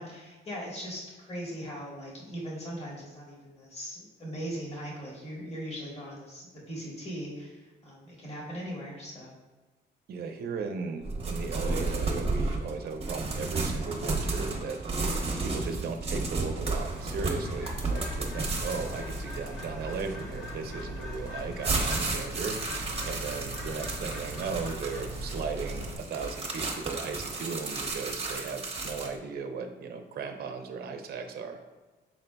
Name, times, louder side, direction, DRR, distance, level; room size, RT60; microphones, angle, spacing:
voice 1, 0.0-9.3 18.2-18.5, equal, 30° left, -3 dB, 1.5 m, -39 dB
voice 2, 10.1-14.8 15.4-22.6 23.0-31.6, right 5 dB, 55° right, 5 dB, 0.6 m, -36 dB
sound 1, 11.0-20.5 21.1-29.2, right 3 dB, 30° right, 0.9 m, -33 dB
Bird, 17.0-26.0, equal, 65° left, 1.5 m, -39 dB
6.0 x 3.8 x 2.3 m, 1.3 s
cardioid pair, 90°, 20 cm